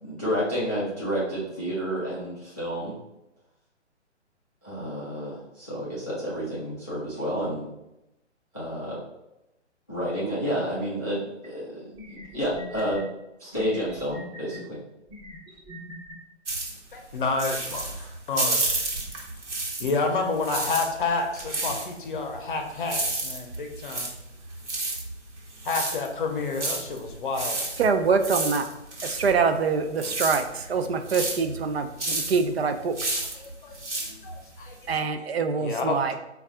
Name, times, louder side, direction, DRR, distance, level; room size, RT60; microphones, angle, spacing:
voice 1, 0.0-2.9 4.6-7.7 8.5-9.0 9.9-11.9 12.3-13.0 13.4-14.8, equal, 15° left, -8 dB, 0.3 m, -30 dB
sound 1, 11.4-11.5 12.0-13.0 13.5-14.6 15.1-16.1, left 1 dB, 10° right, 0.7 m, -42 dB
sound 2, 16.5-20.1 20.3-35.0, right 2 dB, 75° right, 1.1 m, -31 dB
voice 2, 16.9-17.9 18.3-18.8 19.8-24.1 25.6-27.6 33.3-34.9 35.6-36.0, left 4 dB, 45° left, 3 dB, 0.6 m, -29 dB
voice 3, 27.8-28.7 29.0-33.1 34.9-36.1, right 5 dB, 60° right, 8 dB, 0.5 m, -25 dB
4.0 x 2.3 x 3.5 m, 0.91 s
figure-of-eight pair, 130°, 36 cm